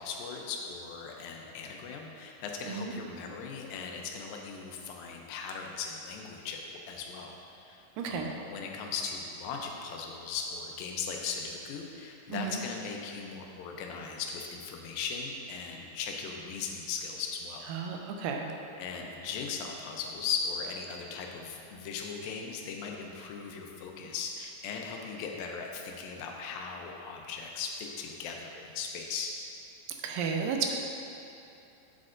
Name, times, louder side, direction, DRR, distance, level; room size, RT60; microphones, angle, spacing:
voice 1, 0.0-17.7 18.8-29.3, left 5 dB, 90° left, 1 dB, 2.5 m, -38 dB
voice 2, 8.0-8.3 12.3-12.6 17.7-18.5 30.0-30.8, right 5 dB, 85° right, 2 dB, 2.2 m, -32 dB
8.7 x 7.7 x 2.5 m, 2.8 s
omnidirectional pair, 4.0 m